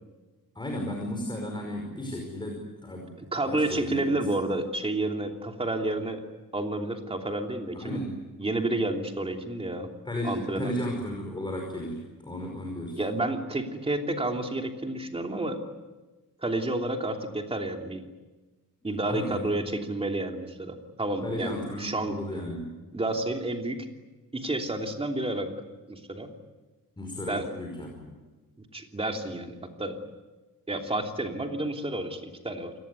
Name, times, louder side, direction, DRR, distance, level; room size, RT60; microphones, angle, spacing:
voice 1, 0.5-3.1 3.5-4.2 7.7-8.2 10.0-13.0 19.1-19.4 21.2-22.7 27.0-28.0, left 1 dB, 15° left, 1 dB, 5.2 m, -34 dB
voice 2, 3.3-6.2 6.5-8.0 8.4-9.9 10.2-10.7 13.0-15.6 16.4-18.0 18.8-21.5 21.8-22.1 22.9-23.9 24.3-25.6 25.9-26.3 27.3-27.5 28.7-30.0 30.7-32.8, right 2 dB, 15° right, 3 dB, 3.1 m, -30 dB
29.0 x 19.0 x 9.7 m, 1.2 s
wide cardioid pair, 140°, 34 cm